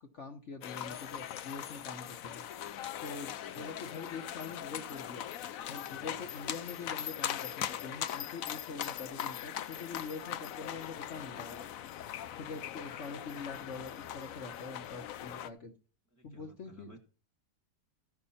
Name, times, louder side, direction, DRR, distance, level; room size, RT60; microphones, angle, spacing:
voice 1, 0.0-2.4 3.0-5.3 5.7-11.7 12.4-15.7 16.2-17.0, left 4 dB, 45° left, 4 dB, 1.2 m, -44 dB
sound 1, 0.6-15.5, left 10 dB, 65° left, 0.9 m, -40 dB
voice 2, 16.1-17.0, right 2 dB, 10° right, 2 dB, 1.3 m, -56 dB
15.0 x 6.1 x 4.2 m, 0.37 s
omnidirectional pair, 2.0 m